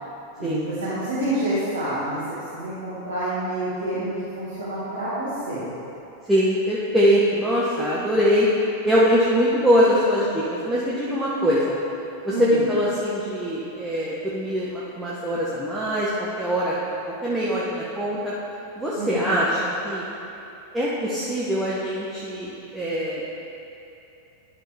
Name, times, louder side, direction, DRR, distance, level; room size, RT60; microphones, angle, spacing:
voice 1, 0.4-2.2 2.5-5.7 12.3-12.7 19.0-19.5, right 1 dB, 75° right, -12 dB, 1.9 m, -28 dB
voice 2, 6.3-8.5 8.8-11.8 12.2-18.3 18.8-20.0 20.7-23.2, equal, 5° right, -8 dB, 1.1 m, -23 dB
11.5 x 5.9 x 3.5 m, 2.8 s
figure-of-eight pair, 90°, 0 cm